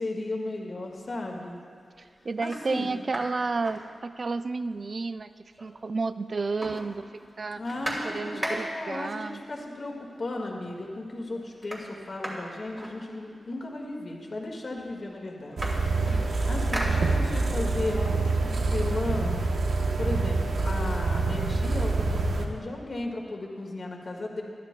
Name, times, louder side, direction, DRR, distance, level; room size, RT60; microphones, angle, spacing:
voice 1, 0.0-1.6 2.2-2.9 7.5-15.7 16.2-24.4, left 2 dB, 50° left, 1 dB, 1.7 m, -35 dB
sound 1, 1.0-1.4 1.9-2.0 2.4-4.5 4.8-4.9 5.1-6.0 6.2-9.0 9.9-10.0 10.4-10.9 11.1-13.6 14.4-14.5 14.8-17.6 18.0-19.7, right 1 dB, 20° right, 2.6 m, -38 dB
voice 2, 2.0-5.3 5.6-7.6 8.0-9.4, right 3 dB, 45° right, 12 dB, 0.3 m, -31 dB
sound 2, 15.6-22.5, right 3 dB, 85° right, 0.9 m, -26 dB
20.5 x 12.5 x 2.2 m, 2.3 s
wide cardioid pair, 105°, 0 cm